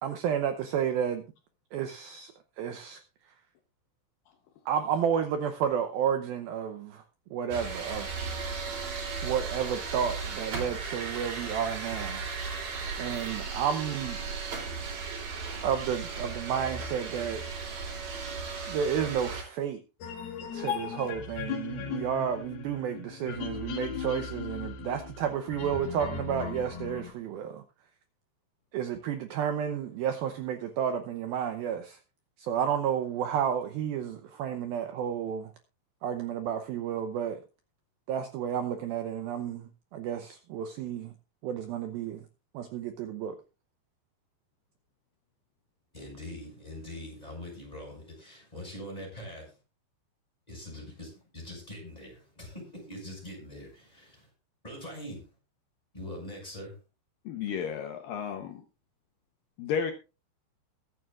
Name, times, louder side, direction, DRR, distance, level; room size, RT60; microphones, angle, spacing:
voice 1, 0.0-1.2 1.7-3.3 4.7-7.0 7.3-8.1 9.2-12.3 13.0-14.2 15.6-17.4 18.7-19.8 20.5-27.6 28.7-32.0 32.4-35.5 36.0-37.4 38.1-41.1 41.4-42.3 42.5-43.4, right 8 dB, 85° right, 7 dB, 2.1 m, -31 dB
sound 1, 7.5-19.4, right 4 dB, 45° right, 4.4 m, -36 dB
sound 2, 20.0-27.1, left 7 dB, 60° left, 3.8 m, -37 dB
voice 2, 45.9-49.6 50.5-54.3 54.6-55.3 55.9-56.7, left 1 dB, 10° left, 0 dB, 6.0 m, -43 dB
voice 3, 57.3-58.6 59.6-59.9, left 7 dB, 85° left, 5 dB, 1.9 m, -32 dB
21.5 x 9.4 x 2.4 m, 0.32 s
omnidirectional pair, 5.4 m